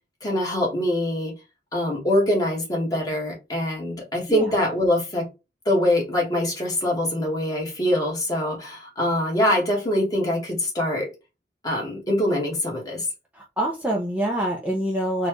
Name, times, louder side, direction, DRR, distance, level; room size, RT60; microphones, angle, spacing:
voice 1, 0.2-1.3 1.7-5.3 5.6-11.1 11.6-13.1, left 1 dB, 20° left, 1.5 m, -24 dB
voice 2, 13.3-15.3, right 1 dB, 10° right, 0.6 m, -26 dB
4.1 x 2.4 x 3.0 m
head